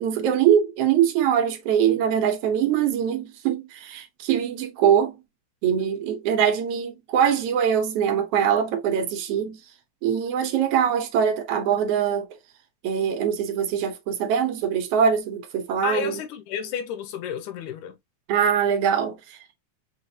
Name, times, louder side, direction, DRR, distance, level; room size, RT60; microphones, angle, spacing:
voice 1, 0.0-5.1 5.6-9.6 10.0-12.3 12.8-16.2 18.3-19.6, right 8 dB, 65° right, 1.6 m, -23 dB
voice 2, 15.8-18.0, left 8 dB, 85° left, 2.1 m, -31 dB
5.6 x 2.5 x 2.7 m
omnidirectional pair, 3.5 m